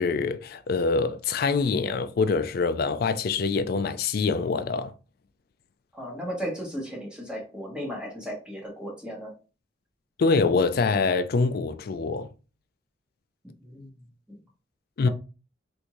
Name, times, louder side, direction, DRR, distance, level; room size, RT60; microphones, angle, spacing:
voice 1, 0.0-4.9 10.2-12.3 15.0-15.1, left 4 dB, 55° left, 0.4 m, -25 dB
voice 2, 5.9-9.3 13.6-13.9 14.3-14.4 15.0-15.1, equal, 5° right, 1.1 m, -35 dB
3.5 x 2.6 x 3.0 m
head